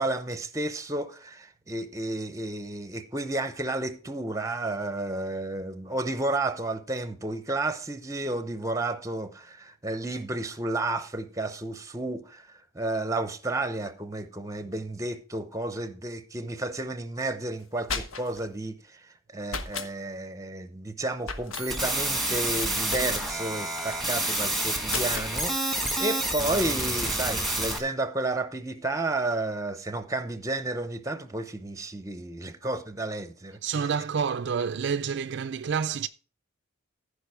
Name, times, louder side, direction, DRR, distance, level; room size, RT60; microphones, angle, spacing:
voice 1, 0.0-19.0 19.3-33.9, right 2 dB, 15° right, 0.8 m, -32 dB
sound 1, 17.6-18.5 19.5-19.9 21.2-21.7 22.9-23.4 24.9-25.3, left 4 dB, 80° left, 1.1 m, -35 dB
sound 2, 21.5-27.8, right 1 dB, ahead, 1.6 m, -28 dB
voice 2, 33.6-36.1, right 6 dB, 55° right, 0.4 m, -28 dB
15.0 x 5.1 x 4.8 m
head